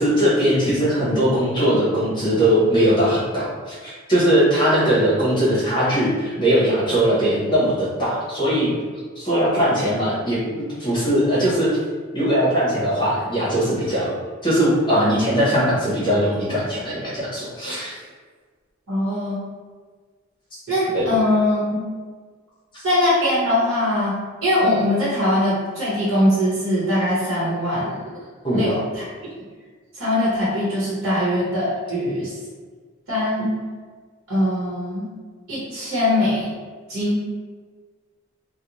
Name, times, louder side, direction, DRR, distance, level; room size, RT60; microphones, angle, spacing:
voice 1, 0.0-8.7 9.2-11.8 12.1-14.1 14.4-18.0 20.9-21.1 22.7-22.8 28.4-28.6, equal, 20° left, -8 dB, 0.8 m, -20 dB
voice 2, 18.9-19.4 20.7-21.8 22.8-27.9 28.5-29.1 29.9-32.3 33.1-33.5 34.3-35.1 35.5-36.5 36.9-37.2, left 1 dB, 70° right, -9 dB, 1.0 m, -21 dB
2.5 x 2.1 x 2.9 m, 1.5 s
head